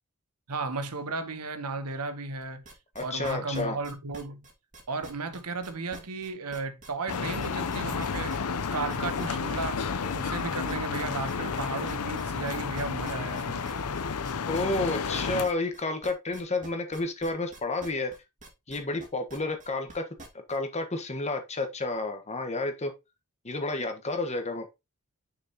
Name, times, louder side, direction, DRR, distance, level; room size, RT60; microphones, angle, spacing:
voice 1, 0.5-2.6 3.0-4.5 4.9-8.4 8.7-13.6, right 3 dB, 90° right, 1.0 m, -34 dB
sound 1, 2.4-20.6, right 2 dB, 35° right, 2.1 m, -47 dB
voice 2, 2.9-3.8 14.5-18.1 18.7-20.0 20.5-22.9 23.4-24.7, left 2 dB, 30° left, 1.3 m, -30 dB
sound 2, 7.1-15.5, left 5 dB, 80° left, 0.7 m, -31 dB
6.3 x 6.1 x 2.9 m
head